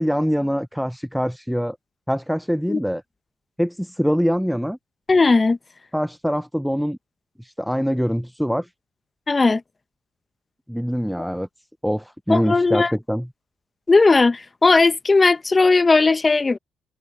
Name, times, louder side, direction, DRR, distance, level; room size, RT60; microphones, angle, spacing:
voice 1, 0.0-1.8 2.1-3.0 3.6-4.8 5.9-7.0 7.4-8.7 10.7-11.5 11.8-13.3, equal, ahead, 0.5 m, -23 dB
voice 2, 5.1-5.6 9.3-9.6 12.3-12.9 13.9-16.6, left 3 dB, 25° left, 1.0 m, -17 dB
cardioid pair, 90°, 0 cm